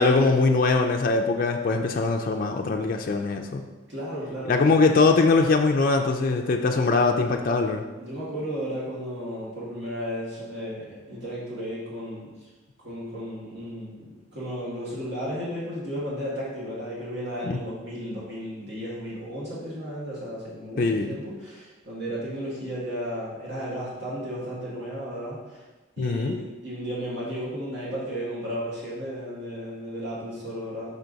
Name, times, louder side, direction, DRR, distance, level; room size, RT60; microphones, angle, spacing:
voice 1, 0.0-3.6 4.5-7.8 17.5-17.6 20.8-21.1 26.0-26.3, left 3 dB, 45° left, 2 dB, 0.3 m, -22 dB
voice 2, 3.9-4.7 8.0-12.3 12.8-25.6 26.0-30.9, equal, 55° right, -7 dB, 1.9 m, -34 dB
5.7 x 4.6 x 3.9 m, 1.2 s
head